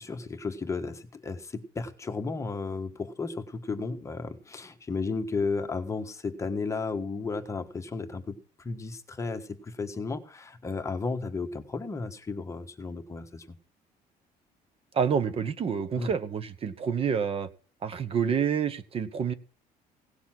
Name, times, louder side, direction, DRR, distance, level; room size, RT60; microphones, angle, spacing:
voice 1, 0.0-13.6 16.0-16.1, left 4 dB, 20° left, 6 dB, 1.4 m, -34 dB
voice 2, 14.9-17.5 17.8-19.3, right 7 dB, 35° right, 14 dB, 1.1 m, -28 dB
17.5 x 7.0 x 6.0 m, 0.39 s
cardioid pair, 145°, 16 cm